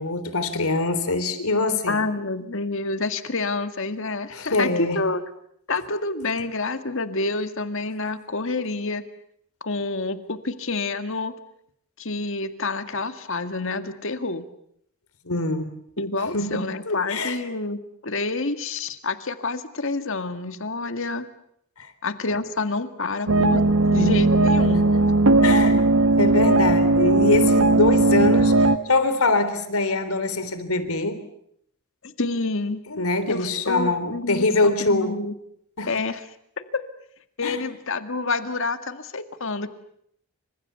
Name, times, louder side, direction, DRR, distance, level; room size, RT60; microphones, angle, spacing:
voice 1, 0.0-2.0 4.3-5.0 15.3-15.7 16.3-17.4 22.3-22.4 25.4-25.8 26.2-31.2 32.9-35.1 35.8-35.9 37.4-37.6, left 2 dB, 85° left, 12 dB, 3.6 m, -23 dB
voice 2, 1.9-5.2 5.7-9.0 9.6-11.3 12.0-14.5 16.0-21.3 22.0-23.6 23.9-24.9 32.0-32.8 33.3-35.3 35.9-36.2 36.6-36.8 37.4-39.7, left 3 dB, 65° left, 9 dB, 2.0 m, -28 dB
sound 1, 23.3-28.8, right 2 dB, 85° right, 1.3 m, -18 dB
29.5 x 26.5 x 7.0 m, 0.71 s
head